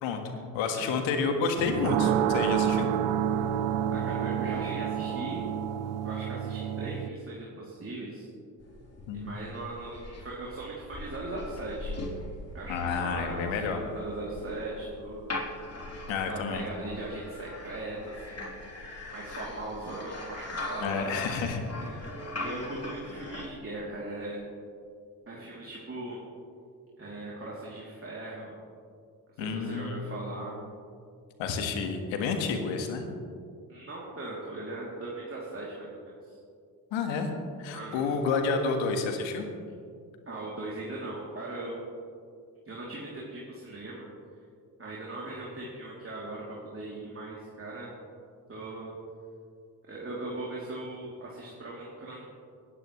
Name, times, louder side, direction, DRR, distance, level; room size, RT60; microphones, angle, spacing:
voice 1, 0.0-2.9 9.1-9.4 12.7-13.8 16.1-16.7 20.8-21.6 29.4-30.0 31.4-33.1 36.9-37.3 37.6-39.5, left 5 dB, 70° left, 5 dB, 1.7 m, -30 dB
sound 1, 1.6-7.1, right 10 dB, 65° right, 0.7 m, -29 dB
voice 2, 3.9-5.4 6.0-8.3 9.1-11.9 12.5-15.2 16.1-18.5 19.1-21.1 21.8-21.9 22.4-24.4 25.3-26.2 27.0-28.5 29.4-30.6 33.7-36.4 37.7-38.0 40.3-41.8 42.6-44.1 44.8-47.9 48.5-49.0 49.9-52.2, right 2 dB, 25° right, -5 dB, 3.1 m, -39 dB
sound 2, 8.6-23.5, left 2 dB, 30° left, 3.4 m, -41 dB
20.5 x 9.9 x 3.2 m, 2.3 s
hypercardioid pair, 55°, 48 cm